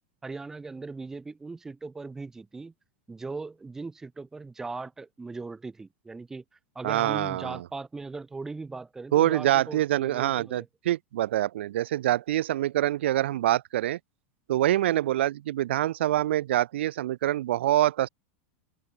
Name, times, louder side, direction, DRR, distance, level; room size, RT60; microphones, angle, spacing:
voice 1, 0.2-2.7 3.1-6.4 6.8-10.7, right 3 dB, 5° right, 2.2 m, -39 dB
voice 2, 6.8-7.6 9.1-14.0 14.5-18.1, right 13 dB, 85° right, 1.2 m, -25 dB
supercardioid pair, 170°, 6 cm